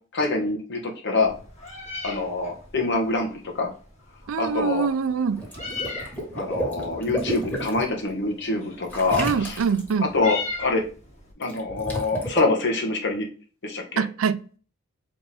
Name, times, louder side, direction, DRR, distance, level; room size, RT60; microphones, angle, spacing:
voice 1, 0.1-1.3 2.0-3.7 4.4-4.9 6.3-9.6 10.0-10.8 11.4-13.3 13.6-14.0, left 3 dB, 60° left, 1.2 m, -25 dB
Meow, 1.2-11.3, left 3 dB, 35° left, 1.5 m, -39 dB
voice 2, 4.3-5.4 9.2-10.1 14.0-14.6, right 6 dB, 90° right, 0.4 m, -24 dB
Water / Liquid, 5.3-7.8 8.9-9.9 11.4-12.4, right 1 dB, 10° left, 1.4 m, -31 dB
4.2 x 3.4 x 3.3 m
head